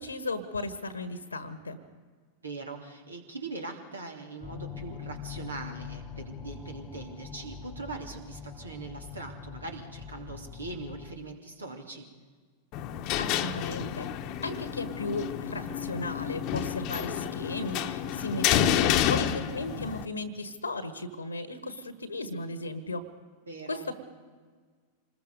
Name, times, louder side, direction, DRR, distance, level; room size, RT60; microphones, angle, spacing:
voice 1, 0.0-1.8 13.2-14.1 14.4-23.0 23.7-24.0, left 2 dB, 80° left, 11 dB, 1.4 m, -35 dB
voice 2, 2.4-12.1 23.5-23.9, right 3 dB, 75° right, 3 dB, 2.8 m, -41 dB
sound 1, 4.4-11.2, left 6 dB, 15° left, 1.0 m, -43 dB
sound 2, 12.7-20.0, left 10 dB, 40° left, 1.1 m, -29 dB
26.5 x 20.5 x 5.3 m, 1.5 s
figure-of-eight pair, 90°, 0 cm